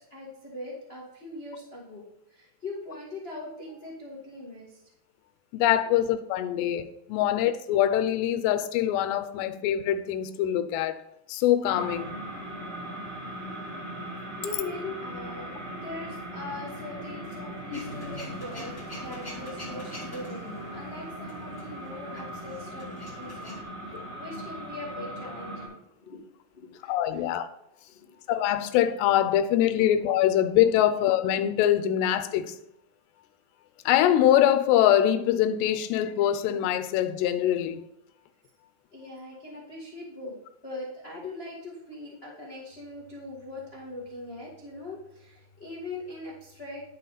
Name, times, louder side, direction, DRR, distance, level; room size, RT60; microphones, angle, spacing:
voice 1, 0.0-2.0 2.3-4.8 5.8-6.0 9.5-9.6 14.4-15.5 15.8-22.9 23.2-23.6 23.9-26.2 26.5-27.4 27.9-28.2 29.7-29.8 38.9-40.3 40.6-46.8, left 2 dB, 60° left, 0.6 m, -41 dB
voice 2, 5.5-11.0 11.3-12.1 17.7-17.8 23.9-24.0 26.9-27.5 28.3-32.5 33.9-37.8, left 11 dB, 90° left, 2.9 m, -24 dB
sound 1, 11.6-25.7, right 1 dB, 55° right, 5.3 m, -39 dB
Male speech man speaking / Vehicle / Engine starting, 17.7-23.6, left 1 dB, 10° left, 1.5 m, -45 dB
11.5 x 5.9 x 4.0 m
omnidirectional pair, 4.8 m